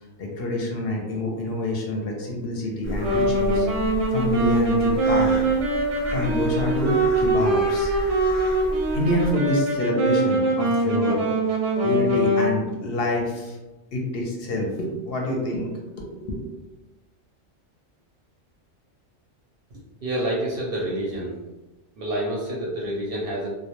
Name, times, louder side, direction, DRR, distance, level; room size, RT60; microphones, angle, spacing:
voice 1, 0.2-3.7 4.1-5.4 6.1-7.9 8.9-11.2 11.8-13.6 13.9-15.7 16.0-16.6, left 1 dB, 60° left, -1 dB, 0.7 m, -27 dB
sound 1, 2.8-9.3, equal, 15° left, 0.6 m, -34 dB
Wind instrument woodwind instrument, 3.0-12.5, right 2 dB, 90° right, 1.0 m, -23 dB
voice 2, 20.0-21.4 22.0-23.5, right 1 dB, 60° right, -3 dB, 0.6 m, -28 dB
2.2 x 2.1 x 2.8 m, 1.1 s
omnidirectional pair, 1.2 m